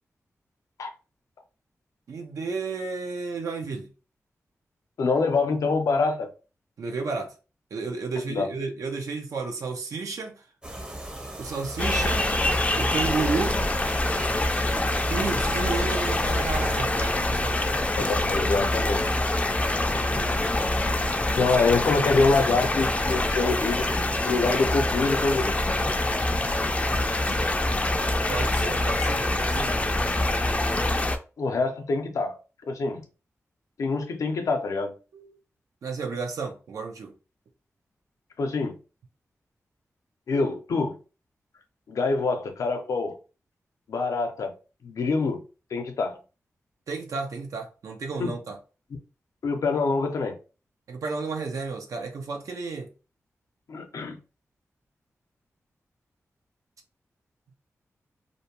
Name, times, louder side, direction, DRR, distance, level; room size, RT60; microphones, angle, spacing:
voice 1, 2.1-3.9 6.8-7.3 7.7-10.4 11.4-12.3 12.8-13.6 15.1-17.6 28.3-29.7 35.1-35.4 35.8-37.1 46.9-48.6 50.9-52.9, right 4 dB, 85° right, 0.6 m, -32 dB
voice 2, 5.0-6.3 8.3-8.5 17.9-19.1 21.3-23.8 24.2-25.6 31.4-32.4 32.7-33.0 33.8-34.9 38.4-38.8 40.3-41.0 41.9-43.2 43.9-44.5 44.8-45.4 45.7-46.2 48.2-48.3 49.4-50.4 53.7-54.2, left 3 dB, 80° left, 0.5 m, -25 dB
sound 1, 10.6-16.8, right 1 dB, 20° right, 0.6 m, -39 dB
sound 2, 11.8-31.2, left 1 dB, 25° left, 0.4 m, -25 dB
2.6 x 2.2 x 2.9 m
cardioid pair, 65°, 5 cm